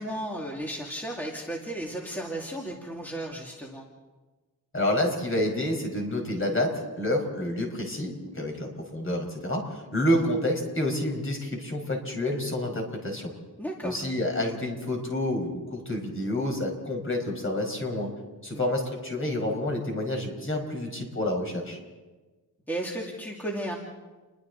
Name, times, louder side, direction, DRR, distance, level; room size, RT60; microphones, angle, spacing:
voice 1, 0.0-3.9 10.2-10.3 13.6-14.0 18.5-18.7 22.7-23.8, right 1 dB, 5° left, -2 dB, 2.4 m, -34 dB
voice 2, 4.7-13.3 13.8-18.1 18.4-21.8, left 1 dB, 30° left, 2 dB, 5.1 m, -29 dB
30.0 x 22.5 x 4.0 m, 1.2 s
wide cardioid pair, 130°, 40 cm